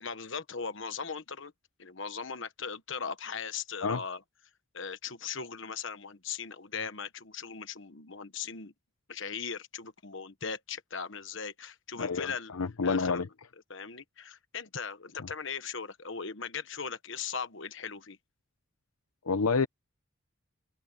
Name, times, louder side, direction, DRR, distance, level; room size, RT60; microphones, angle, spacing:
voice 1, 0.0-1.5 1.8-4.2 4.7-8.7 9.1-12.5 12.8-13.2 13.7-18.2, left 6 dB, 60° left, 1.3 m, -39 dB
voice 2, 12.0-13.3 19.3-19.7, left 4 dB, 90° left, 0.8 m, -28 dB
head